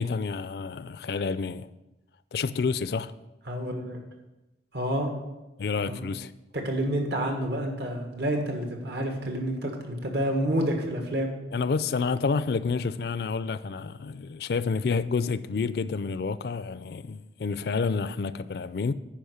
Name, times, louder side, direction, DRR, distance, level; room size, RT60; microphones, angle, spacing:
voice 1, 0.0-1.7 2.3-3.1 5.6-6.3 11.5-18.9, left 4 dB, 60° left, 0.4 m, -29 dB
voice 2, 3.5-4.0 4.7-5.1 5.9-6.0 6.5-11.3, right 1 dB, 70° right, 1.6 m, -29 dB
10.5 x 5.0 x 6.5 m
head